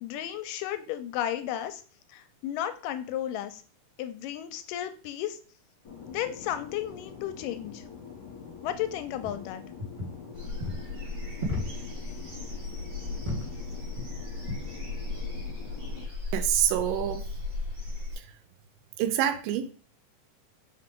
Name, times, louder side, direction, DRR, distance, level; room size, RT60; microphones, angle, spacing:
voice 1, 0.0-1.8 2.1-3.6 4.0-5.4 6.1-7.8 8.6-9.6, left 11 dB, 85° left, 10 dB, 2.2 m, -33 dB
Fixed-wing aircraft airplane, 5.8-16.0, left 6 dB, 40° left, 2.7 m, -45 dB
sound 1, 9.1-9.4 9.8-10.3 10.6-10.8 11.4-11.9 12.2-12.4 12.8-13.5 13.9-14.2 14.5-14.6 15.4-15.6, left 1 dB, 25° right, 1.1 m, -35 dB
sound 2, 10.3-18.2, left 2 dB, 45° right, 3.3 m, -36 dB
voice 2, 16.3-17.2 19.0-19.7, right 11 dB, 85° right, 8 dB, 2.4 m, -26 dB
5.6 x 4.9 x 3.7 m, 0.40 s
omnidirectional pair, 3.8 m